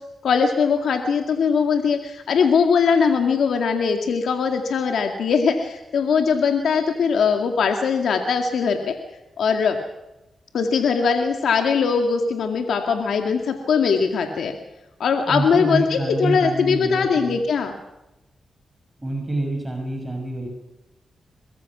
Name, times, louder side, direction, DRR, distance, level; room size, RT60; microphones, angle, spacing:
voice 1, 0.2-9.0 9.4-9.8 10.5-14.5 15.0-17.7, left 5 dB, 85° left, 4 dB, 2.1 m, -21 dB
voice 2, 15.3-17.4 19.0-20.5, right 2 dB, 20° right, 2 dB, 6.2 m, -27 dB
23.5 x 20.5 x 6.1 m, 0.95 s
cardioid pair, 65°, 0 cm